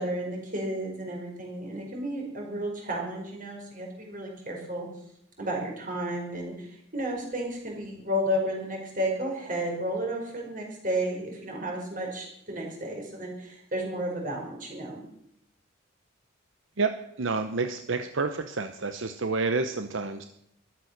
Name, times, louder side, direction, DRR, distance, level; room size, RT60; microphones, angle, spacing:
voice 1, 0.0-4.9 5.4-15.0, right 1 dB, 40° right, 0 dB, 4.8 m, -32 dB
voice 2, 16.8-20.3, right 4 dB, 70° right, 9 dB, 0.8 m, -29 dB
14.0 x 12.5 x 6.5 m, 0.76 s
head